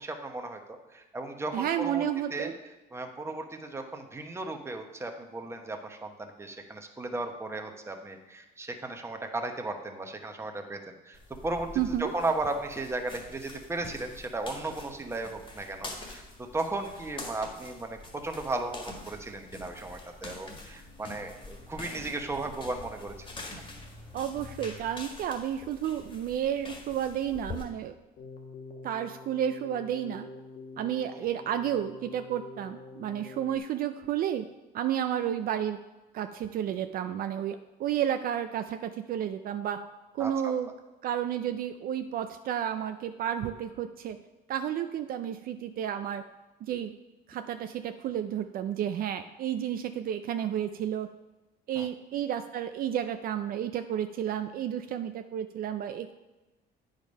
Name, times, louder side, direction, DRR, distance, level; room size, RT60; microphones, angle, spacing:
voice 1, 0.0-2.0 2.3-2.5 2.9-10.8 11.1-11.7 12.0-23.1 31.1-31.2 40.2-40.5 51.8-51.9, right 2 dB, 15° right, 5 dB, 1.0 m, -35 dB
voice 2, 1.5-2.5 11.8-12.1 24.1-27.9 28.8-30.3 30.8-34.5 34.7-35.8 36.1-39.8 40.1-40.7 41.0-44.2 44.5-46.2 46.6-46.9 47.3-51.1 51.7-56.1, right 10 dB, 60° right, 9 dB, 0.4 m, -31 dB
sound 1, 11.1-27.6, left 2 dB, 30° left, 1.7 m, -45 dB
Keyboard (musical), 28.2-33.6, left 3 dB, 60° left, 1.3 m, -46 dB
9.1 x 5.2 x 5.3 m, 1.1 s
cardioid pair, 110°, 17 cm